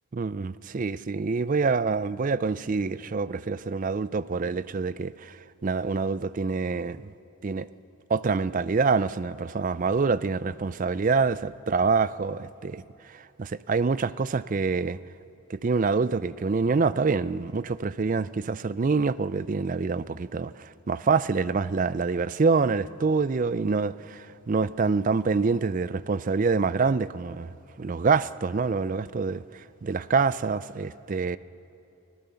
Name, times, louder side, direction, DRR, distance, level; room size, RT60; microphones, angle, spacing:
voice 1, 0.2-5.4 5.6-7.1 7.4-7.7 8.1-12.8 13.1-15.0 15.5-31.4, right 4 dB, 35° right, 0.4 m, -26 dB
25.0 x 15.5 x 6.9 m
head